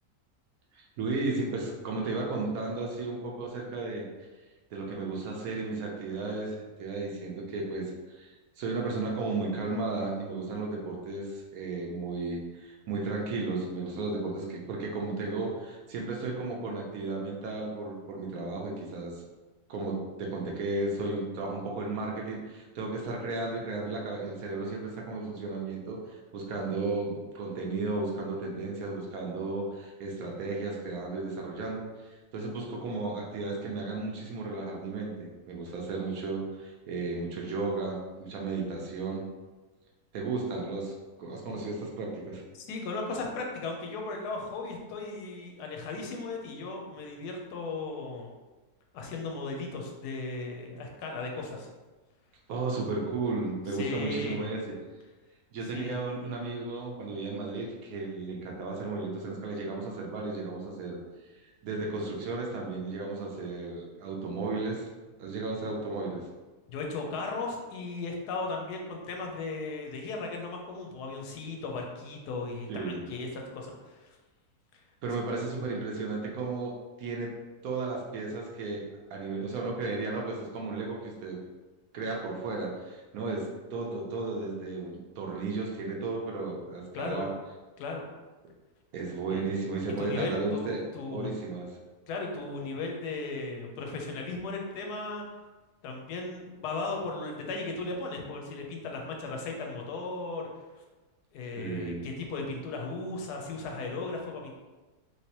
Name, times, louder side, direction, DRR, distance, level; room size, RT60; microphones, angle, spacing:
voice 1, 0.7-4.0 4.7-19.2 19.7-31.9 32.3-39.2 40.1-40.9 41.2-42.4 52.5-54.6 55.5-61.0 61.6-64.9 65.2-66.2 72.7-73.0 75.0-77.3 77.6-78.8 79.1-81.4 81.9-87.3 88.9-90.8 91.1-91.7 101.6-102.0, right 3 dB, 70° right, -1 dB, 1.0 m, -34 dB
voice 2, 42.5-48.3 48.9-51.7 53.7-54.4 55.6-56.0 66.7-74.2 74.7-74.8 86.9-87.2 87.8-88.1 89.3-89.5 90.0-91.3 92.1-95.2 95.8-100.5 101.3-104.5, left 3 dB, 90° left, 1 dB, 1.2 m, -36 dB
3.1 x 3.1 x 2.9 m, 1.2 s
omnidirectional pair, 1.7 m